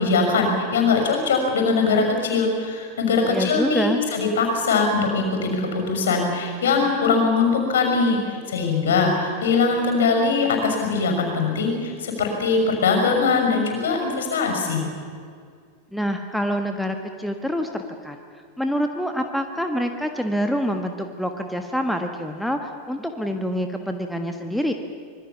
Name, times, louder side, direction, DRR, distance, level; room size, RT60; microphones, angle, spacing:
voice 1, 0.0-14.8, left 4 dB, 60° left, 4 dB, 6.2 m, -21 dB
voice 2, 3.3-4.0 15.9-18.2 18.6-24.7, equal, ahead, 5 dB, 1.5 m, -26 dB
25.5 x 21.5 x 7.2 m, 2.1 s
figure-of-eight pair, 90°, 0 cm